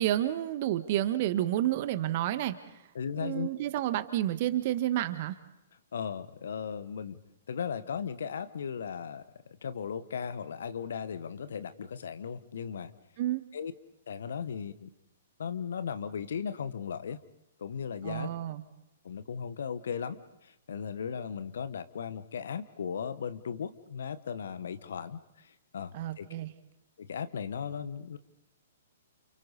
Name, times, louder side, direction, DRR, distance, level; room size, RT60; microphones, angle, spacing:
voice 1, 0.0-2.5 3.2-5.3 13.2-13.4 18.0-18.6 25.9-26.5, right 13 dB, 45° right, 10 dB, 1.5 m, -30 dB
voice 2, 2.9-3.5 5.9-7.2 7.5-9.3 9.6-12.9 13.5-13.7 14.1-14.9 15.4-17.2 17.6-18.3 19.0-20.2 20.4-26.3 27.0-28.2, left 7 dB, 65° left, 12 dB, 1.2 m, -37 dB
29.5 x 29.0 x 4.1 m, 0.87 s
figure-of-eight pair, 120°, 0 cm